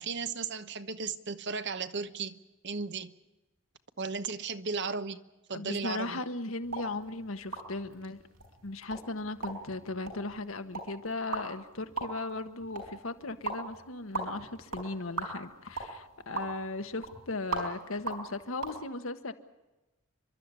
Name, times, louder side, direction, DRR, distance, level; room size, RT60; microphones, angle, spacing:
voice 1, 0.0-3.1 4.0-5.2 5.5-6.2, right 5 dB, 55° right, 11 dB, 1.1 m, -35 dB
voice 2, 5.5-8.2 8.6-19.3, left 2 dB, 75° left, 8 dB, 1.5 m, -37 dB
sound 1, 6.6-18.8, right 3 dB, 80° right, 5.5 m, -41 dB
30.0 x 12.5 x 9.7 m, 1.1 s
head